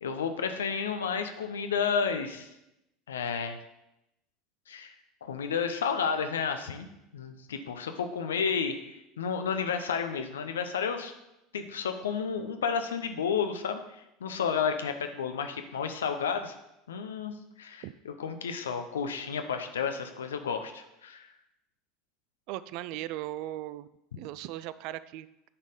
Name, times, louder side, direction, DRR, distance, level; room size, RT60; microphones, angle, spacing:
voice 1, 0.0-2.5 3.1-3.6 4.7-4.9 5.2-11.1 11.5-16.5 16.9-21.3, left 6 dB, 70° left, 7 dB, 0.8 m, -31 dB
voice 2, 22.5-23.9 24.2-25.3, right 14 dB, 55° right, 16 dB, 0.3 m, -37 dB
9.7 x 4.2 x 5.1 m, 0.88 s
figure-of-eight pair, 75°, 0 cm